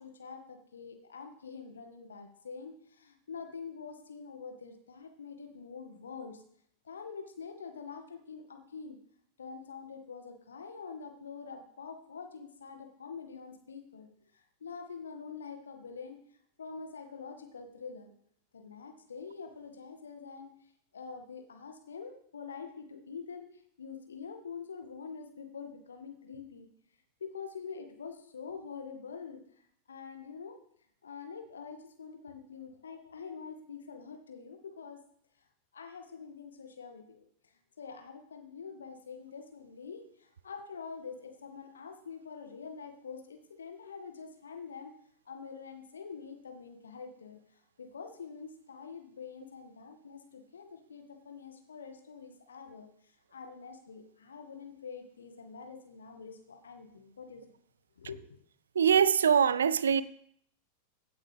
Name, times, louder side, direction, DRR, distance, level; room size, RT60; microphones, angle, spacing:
voice 1, 0.0-6.4 6.8-9.0 9.4-16.2 16.6-18.1 18.5-26.7 27.2-29.4 29.9-30.6 31.0-35.0 35.7-44.9 45.3-47.4 47.8-52.9 53.3-57.4 58.0-58.4, left 5 dB, 70° left, 1.9 m, -45 dB
voice 2, 58.7-60.0, right 7 dB, 70° right, 0.5 m, -23 dB
16.0 x 8.6 x 3.5 m
figure-of-eight pair, 90°, 0 cm